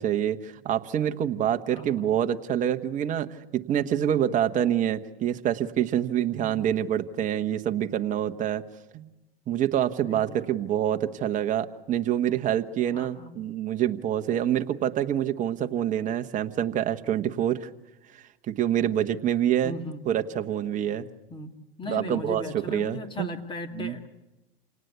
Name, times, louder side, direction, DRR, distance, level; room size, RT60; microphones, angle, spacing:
voice 1, 0.0-3.3 3.7-8.6 8.9-9.1 9.5-17.7 18.5-19.7 20.1-21.1 21.9-23.3 23.8-24.0, right 10 dB, 25° right, 6 dB, 1.2 m, -26 dB
voice 2, 1.7-2.1 6.4-6.7 10.1-10.5 12.9-13.4 19.6-20.0 21.3-24.1, left 2 dB, 15° left, 7 dB, 2.4 m, -37 dB
27.5 x 18.5 x 8.2 m, 1.0 s
supercardioid pair, 130°, 29 cm